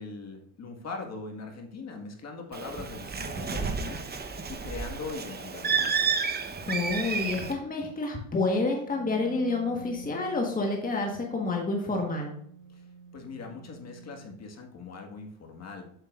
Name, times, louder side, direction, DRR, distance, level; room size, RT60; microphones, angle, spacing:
voice 1, 0.0-6.1 12.7-15.9, left 4 dB, 40° left, 3 dB, 1.8 m, -41 dB
Bird, 2.5-7.5, right 5 dB, 25° right, 1.0 m, -31 dB
voice 2, 6.7-12.3, left 3 dB, 20° left, 1 dB, 1.5 m, -29 dB
Wind instrument woodwind instrument, 8.9-14.6, right 4 dB, 85° right, 2.3 m, -48 dB
7.8 x 7.3 x 2.5 m, 0.66 s
supercardioid pair, 85°, 39 cm